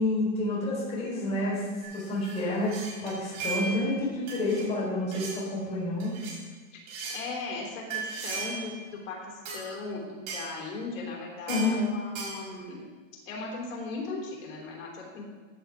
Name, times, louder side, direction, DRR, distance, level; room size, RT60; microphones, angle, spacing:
voice 1, 0.0-1.6 1.9-2.7 3.0-6.1 11.5-11.7, left 2 dB, 15° left, -6 dB, 4.0 m, -29 dB
sound 1, 1.8-3.9 4.3-4.7 5.1-5.4 6.0-6.4 6.9-7.2 7.9-8.7 9.4-9.6 10.3-10.6 11.5-11.8 12.1-12.4, right 4 dB, 45° right, 4.2 m, -37 dB
voice 2, 7.1-12.8 13.3-15.2, left 3 dB, 85° left, -2 dB, 3.6 m, -37 dB
14.5 x 8.9 x 3.6 m, 1.4 s
supercardioid pair, 160°, 39 cm